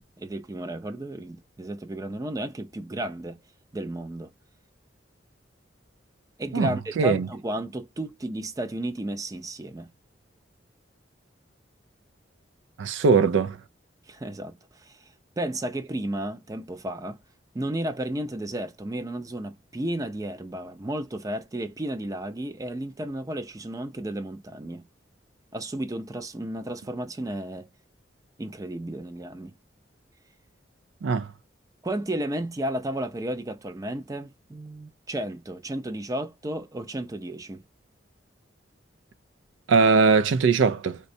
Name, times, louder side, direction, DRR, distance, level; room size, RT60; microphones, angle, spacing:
voice 1, 0.2-3.4 3.7-4.3 6.4-9.9 14.1-15.0 15.4-17.2 17.5-24.8 25.5-27.7 28.4-29.5 31.8-37.6, right 1 dB, 20° right, 0.4 m, -33 dB
voice 2, 6.5-7.3 12.8-13.6 31.0-31.3 39.7-41.0, right 5 dB, 90° right, 0.4 m, -21 dB
4.1 x 2.2 x 2.6 m
head